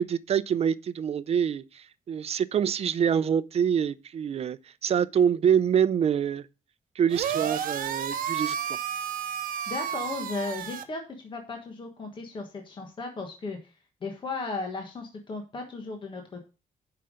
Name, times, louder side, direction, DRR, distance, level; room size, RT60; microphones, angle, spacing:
voice 1, 0.0-6.5 7.0-8.8, right 8 dB, 45° right, 0.5 m, -26 dB
sound 1, 7.1-10.8, right 8 dB, 85° right, 1.1 m, -31 dB
voice 2, 9.7-13.7 14.0-16.4, left 3 dB, 35° left, 1.4 m, -36 dB
7.8 x 5.7 x 6.4 m
wide cardioid pair, 165°, 14 cm